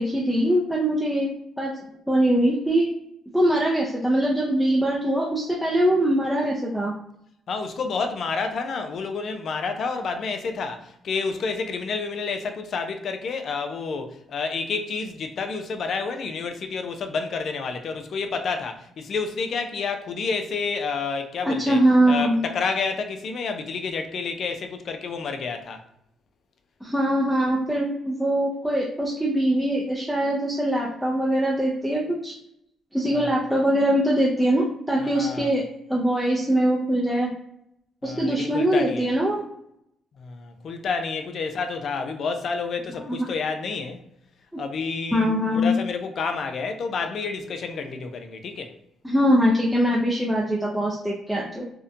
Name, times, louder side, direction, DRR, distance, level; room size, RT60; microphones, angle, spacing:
voice 1, 0.0-1.7 2.1-2.8 3.3-6.9 21.4-22.4 26.8-32.3 32.9-35.6 35.9-37.3 38.0-39.4 43.0-43.2 45.1-45.7 49.0-51.6, equal, ahead, 0.5 m, -22 dB
voice 2, 7.5-21.8 22.1-25.8 33.1-33.3 35.1-35.5 38.0-39.1 40.2-44.0 44.6-48.7, left 4 dB, 60° left, 0.4 m, -29 dB
2.6 x 2.1 x 2.5 m
supercardioid pair, 75°, 0 cm